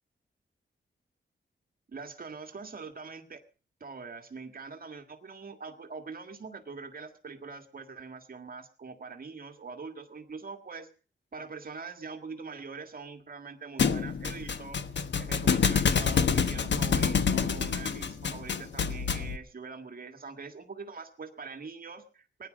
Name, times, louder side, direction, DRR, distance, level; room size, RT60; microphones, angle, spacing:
voice 1, 1.9-3.4 3.8-10.9 11.3-22.5, right 4 dB, 50° right, 6 dB, 1.8 m, -43 dB
Thump thud, 13.8-19.4, left 6 dB, 65° left, 1.2 m, -27 dB
20.0 x 10.5 x 6.3 m, 0.39 s
wide cardioid pair, 135°, 19 cm